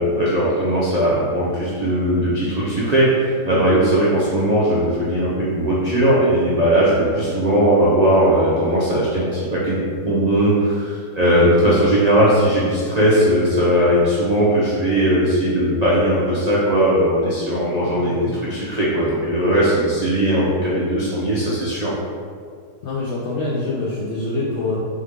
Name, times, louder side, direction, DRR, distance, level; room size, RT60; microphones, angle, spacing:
voice 1, 0.0-21.9, right 1 dB, 70° right, -8 dB, 0.3 m, -18 dB
voice 2, 22.8-24.8, left 2 dB, 75° left, -5 dB, 0.6 m, -25 dB
3.7 x 3.2 x 3.5 m, 2.2 s
omnidirectional pair, 1.7 m